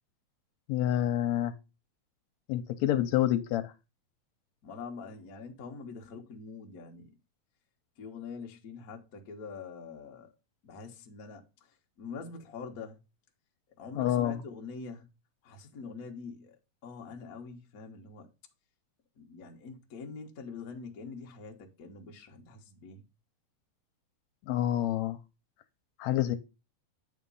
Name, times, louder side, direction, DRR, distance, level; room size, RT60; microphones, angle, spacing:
voice 1, 0.7-1.5 2.5-3.7 14.0-14.4 24.5-25.2 26.0-26.4, left 12 dB, 75° left, 1.9 m, -28 dB
voice 2, 4.6-7.1 8.0-10.3 10.6-13.0 13.8-15.1 15.4-16.6 16.8-18.3 19.2-23.0, left 5 dB, 55° left, 1.0 m, -44 dB
8.7 x 3.7 x 5.4 m
omnidirectional pair, 3.4 m